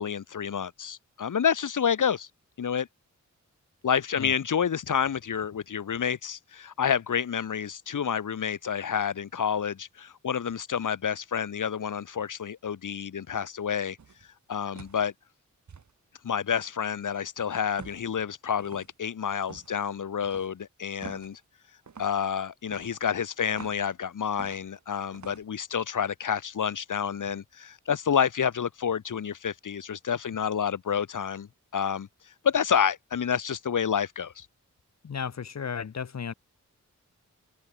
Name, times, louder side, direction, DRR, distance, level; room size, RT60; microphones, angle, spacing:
voice 1, 0.0-2.3 2.6-2.9 3.8-14.0 14.5-15.1 16.2-21.4 22.0-32.1 32.4-34.5, left 7 dB, 75° left, 1.8 m, -29 dB
sound 1, 14.0-14.3 14.8-15.1 15.7-15.9 17.8-18.1 18.6-18.9 19.4-19.8 20.2-20.5 21.0-21.3 21.9-22.2 22.7-23.9 24.4-24.8 25.1-25.4, right 6 dB, 65° right, 5.4 m, -46 dB
voice 2, 35.0-36.3, left 6 dB, 60° left, 1.3 m, -34 dB
open air
wide cardioid pair, 130°, 31 cm